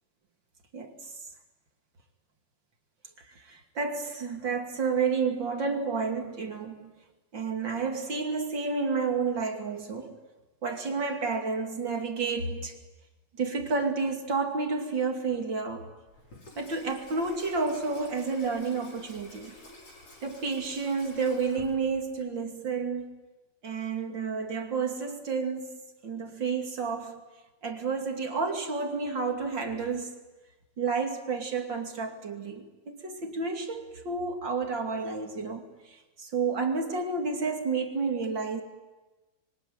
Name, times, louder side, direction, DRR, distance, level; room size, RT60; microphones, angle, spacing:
voice 1, 3.5-6.9 7.3-10.2 10.6-12.8 13.4-15.9 16.6-19.5 20.2-23.1 23.6-25.7 26.0-27.2 27.6-30.2 30.8-35.6 36.2-38.6, right 4 dB, 35° right, 2.8 m, -30 dB
Water tap faucet / Sink (filling or washing), 16.1-22.3, left 2 dB, 40° left, 6.0 m, -50 dB
26.5 x 23.5 x 9.4 m
omnidirectional pair, 4.2 m